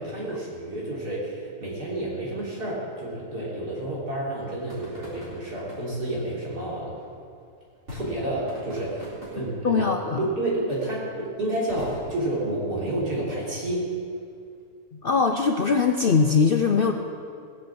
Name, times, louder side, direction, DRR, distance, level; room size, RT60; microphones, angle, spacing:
voice 1, 0.0-6.9 7.9-9.8 10.2-13.9, right 1 dB, 80° right, -5 dB, 4.1 m, -30 dB
sound 1, 4.7-14.6, equal, 45° right, 4.3 m, -46 dB
voice 2, 9.6-10.2 14.9-16.9, left 5 dB, 55° left, 4 dB, 0.6 m, -21 dB
18.0 x 7.6 x 7.6 m, 2.3 s
omnidirectional pair, 1.7 m